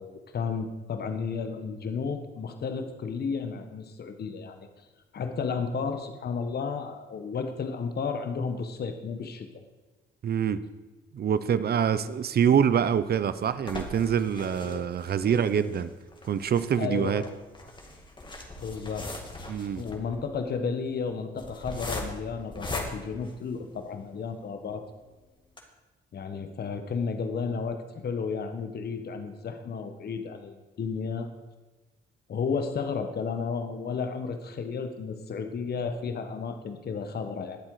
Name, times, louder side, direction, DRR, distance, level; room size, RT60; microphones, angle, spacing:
voice 1, 0.0-4.9 5.1-9.5 14.4-14.9 15.2-15.6 16.7-17.3 18.6-19.1 19.8-24.8 26.1-31.3 32.3-37.6, left 5 dB, 55° left, 7 dB, 1.5 m, -33 dB
voice 2, 10.2-10.6 11.1-15.9 16.2-17.2 19.5-19.8, right 8 dB, 50° right, 14 dB, 0.8 m, -25 dB
sound 1, 12.7-24.0 24.6-24.7 25.0-25.1 25.4-25.6, left 2 dB, 25° left, 2.5 m, -40 dB
21.5 x 7.5 x 5.0 m, 1.2 s
cardioid pair, 90°, 20 cm